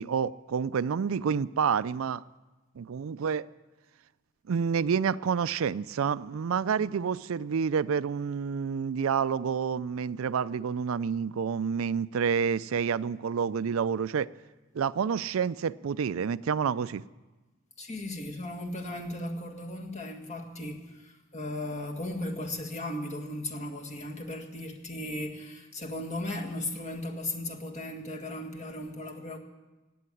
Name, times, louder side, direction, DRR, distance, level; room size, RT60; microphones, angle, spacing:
voice 1, 0.0-2.2 2.8-3.5 4.5-14.3 14.7-17.0, right 6 dB, 80° right, 0.4 m, -28 dB
voice 2, 17.8-29.4, left 1 dB, 35° left, 1.8 m, -36 dB
17.0 x 8.6 x 9.8 m
head